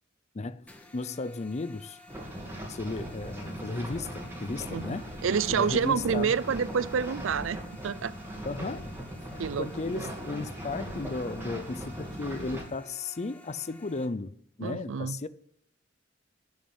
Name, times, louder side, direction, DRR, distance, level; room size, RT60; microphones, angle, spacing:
voice 1, 0.3-2.0 2.7-5.1 5.5-6.3 8.4-8.9 9.3-15.3, left 3 dB, 35° left, 0.6 m, -35 dB
sound 1, 0.7-14.1, left 2 dB, 5° left, 1.5 m, -53 dB
sound 2, 2.1-12.6, equal, 15° right, 2.6 m, -39 dB
voice 2, 4.7-8.1 9.4-10.0 14.6-15.2, right 6 dB, 70° right, 0.5 m, -29 dB
11.0 x 7.1 x 9.5 m
head